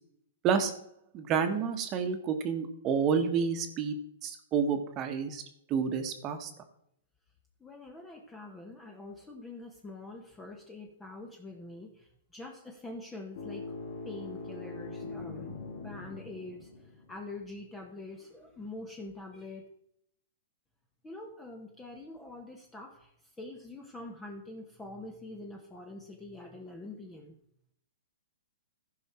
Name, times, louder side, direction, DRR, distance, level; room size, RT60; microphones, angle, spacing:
voice 1, 1.1-5.4 5.7-6.5, right 6 dB, 25° right, 7 dB, 1.3 m, -29 dB
voice 2, 7.6-13.7 14.0-15.6 15.8-19.7 21.0-23.1 23.4-27.3, left 2 dB, 10° left, 2 dB, 1.0 m, -45 dB
sound 1, 13.3-17.3, left 3 dB, 60° left, 2.3 m, -42 dB
15.0 x 5.5 x 4.3 m, 0.73 s
hypercardioid pair, 150°, 0 cm